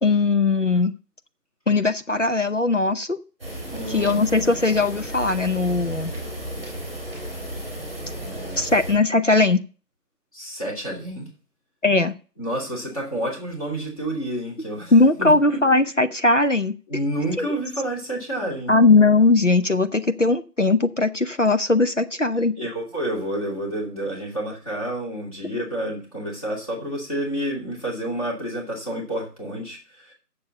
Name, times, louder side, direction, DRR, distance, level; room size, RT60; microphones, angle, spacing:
voice 1, 0.0-0.9 1.7-3.2 3.9-6.1 8.6-9.6 11.8-12.2 14.9-16.7 17.4-17.5 18.7-22.5, left 3 dB, 50° left, 9 dB, 0.6 m, -19 dB
sound 1, 3.4-8.9, right 1 dB, 5° right, 2.3 m, -33 dB
voice 2, 3.7-4.2 8.2-8.7 10.3-11.3 12.4-14.9 15.2-15.6 16.9-18.7 22.6-30.1, right 1 dB, 20° left, -4 dB, 2.6 m, -29 dB
6.9 x 6.9 x 6.9 m, 0.37 s
figure-of-eight pair, 175°, 48 cm